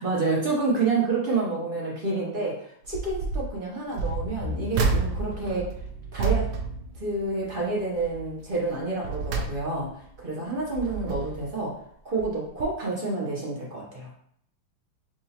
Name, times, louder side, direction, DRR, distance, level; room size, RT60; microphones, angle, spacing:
voice 1, 0.0-5.7 6.1-6.5 7.0-9.9 10.2-11.7 12.0-14.1, right 3 dB, 45° right, -5 dB, 0.7 m, -28 dB
sound 1, 2.8-3.5 3.9-7.6 8.0-8.3 8.8-10.1 10.6-11.5 12.2-12.3 12.6-12.7, right 4 dB, 70° right, 1.0 m, -30 dB
Bowed string instrument, 4.4-8.8, left 5 dB, 60° left, 1.3 m, -42 dB
6.1 x 2.5 x 2.8 m, 0.69 s
omnidirectional pair, 2.2 m